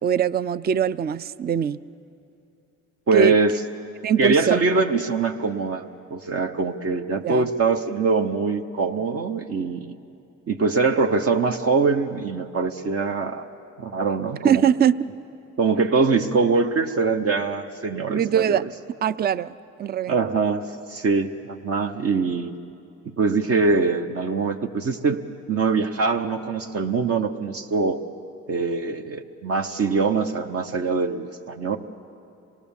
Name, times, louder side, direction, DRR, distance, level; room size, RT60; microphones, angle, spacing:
voice 1, 0.0-1.8 3.1-3.3 4.0-4.6 7.2-7.5 14.4-14.9 18.1-18.6 19.0-19.5 19.8-20.2, right 8 dB, 35° right, 17 dB, 0.4 m, -21 dB
voice 2, 3.1-3.5 4.2-5.8 6.1-9.9 10.5-13.5 13.8-14.6 15.6-18.6 20.1-20.6 20.9-22.5 23.0-25.2 25.5-28.0 28.5-31.8, right 4 dB, 50° right, 5 dB, 0.9 m, -23 dB
25.5 x 18.0 x 7.1 m, 2.6 s
cardioid pair, 90°, 30 cm